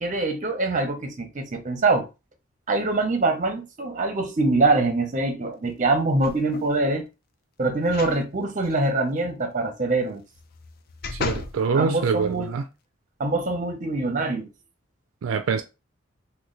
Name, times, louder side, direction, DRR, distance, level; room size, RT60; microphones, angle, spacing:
voice 1, 0.0-2.1 2.7-7.0 7.6-10.2 11.7-12.5 13.2-14.5, right 2 dB, 40° right, 0.7 m, -24 dB
sound 1, 6.2-6.8 7.8-8.2 8.6-8.7 10.3-11.6 12.2-12.3, left 4 dB, 45° left, 0.4 m, -34 dB
voice 2, 11.1-12.6 15.2-15.6, right 5 dB, 70° right, 0.4 m, -25 dB
3.0 x 2.2 x 3.8 m
head